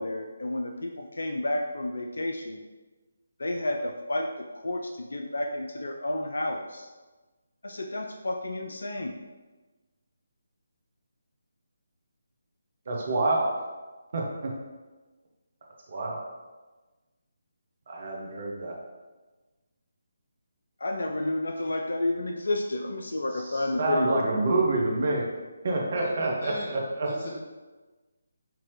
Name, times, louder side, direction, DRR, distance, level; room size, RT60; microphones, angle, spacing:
voice 1, 0.0-2.6 3.4-6.9 7.6-9.2 20.8-24.2, left 1 dB, 65° left, 4 dB, 0.4 m, -31 dB
voice 2, 12.9-13.5 14.1-14.2 15.9-16.2 17.9-18.8 23.8-25.3 25.6-26.5 27.0-27.1, right 2 dB, 45° right, -1 dB, 0.9 m, -26 dB
voice 3, 26.0-26.8 27.0-27.4, equal, 40° left, -5 dB, 1.5 m, -38 dB
5.8 x 2.8 x 3.1 m, 1.2 s
figure-of-eight pair, 150°, 0 cm